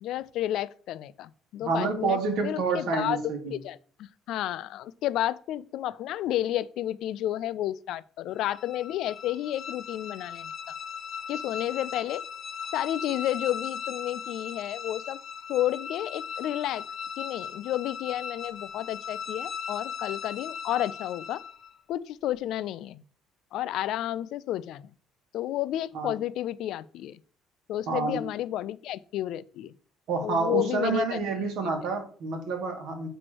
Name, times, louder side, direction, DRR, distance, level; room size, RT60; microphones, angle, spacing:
voice 1, 0.0-3.2 3.5-10.7 11.3-12.2 12.7-15.2 15.5-16.8 17.2-21.4 21.9-23.0 23.5-24.9 25.3-27.2 27.7-29.7 30.2-31.2 31.6-31.7, left 13 dB, 65° left, 0.4 m, -31 dB
voice 2, 1.6-3.5 25.9-26.1 27.9-28.2 30.1-33.1, right 4 dB, 70° right, 2.0 m, -28 dB
sound 1, 8.4-21.8, left 7 dB, 40° left, 1.0 m, -38 dB
7.7 x 3.1 x 6.0 m
cardioid pair, 145°, 0 cm